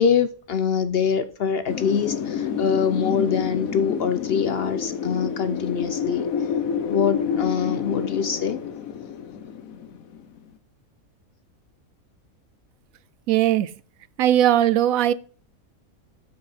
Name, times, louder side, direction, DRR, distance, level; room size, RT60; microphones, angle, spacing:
voice 1, 0.0-6.3 6.9-8.6, left 7 dB, 60° left, 0.7 m, -24 dB
Wind, 1.7-10.4, left 7 dB, 80° left, 1.3 m, -28 dB
voice 2, 13.3-13.7 14.2-15.1, right 12 dB, 85° right, 1.0 m, -19 dB
7.1 x 6.3 x 4.2 m
omnidirectional pair, 1.4 m